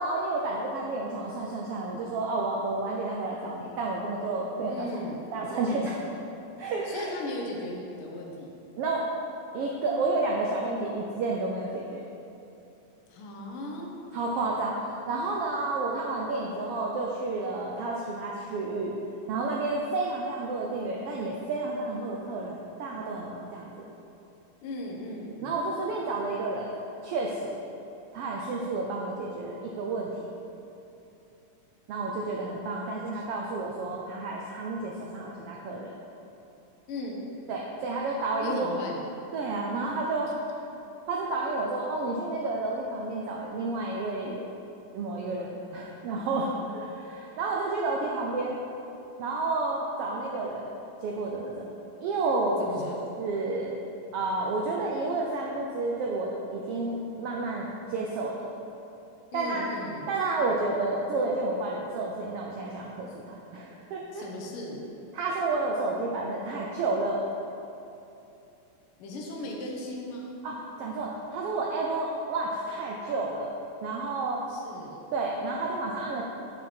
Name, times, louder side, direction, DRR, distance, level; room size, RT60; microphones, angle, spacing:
voice 1, 0.0-4.9 5.3-6.1 6.6-7.1 8.8-9.0 9.5-12.0 14.1-18.9 19.3-23.9 25.4-26.7 27.0-27.5 28.1-30.1 31.9-35.9 37.5-38.8 39.3-40.6 41.1-44.4 44.9-48.6 49.2-50.7 51.0-51.7 52.0-52.7 53.2-53.8 54.1-58.5 59.3-59.7 60.1-64.2 65.1-67.2 70.4-73.5 73.8-74.4 75.1-76.2, right 3 dB, 85° right, -1 dB, 1.3 m, -30 dB
voice 2, 4.7-5.2 6.8-8.6 13.1-13.9 24.6-25.5 33.1-33.2 36.9-37.2 38.4-39.0 39.8-39.9 52.6-53.0 59.3-60.1 64.1-64.9 69.0-70.4 74.5-75.0, left 1 dB, 65° left, -1 dB, 1.4 m, -37 dB
7.3 x 7.0 x 4.3 m, 2.8 s
omnidirectional pair, 3.4 m